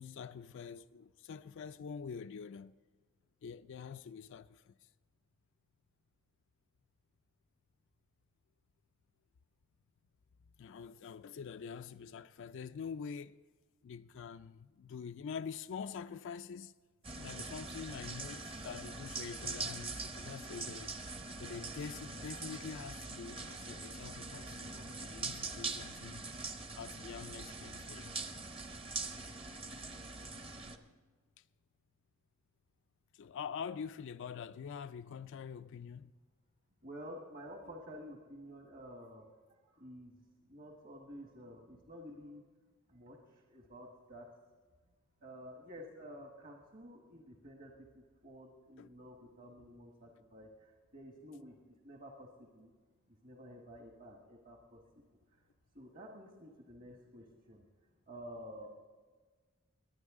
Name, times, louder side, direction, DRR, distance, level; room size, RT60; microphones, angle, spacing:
voice 1, 0.0-2.7 3.4-4.9 10.6-13.4 13.8-16.7 17.2-21.0 21.4-26.2 26.7-28.4 31.4-31.5 33.1-36.1 48.8-48.9, left 6 dB, 60° left, 0.4 m, -46 dB
sound 1, 17.0-30.8, right 3 dB, 25° right, 0.8 m, -43 dB
voice 2, 36.8-39.3 39.7-40.2 40.5-42.4 42.9-44.2 45.2-52.7 53.2-54.8 55.7-57.6 58.1-58.7, equal, 45° right, 1.4 m, -51 dB
21.5 x 9.5 x 3.7 m
head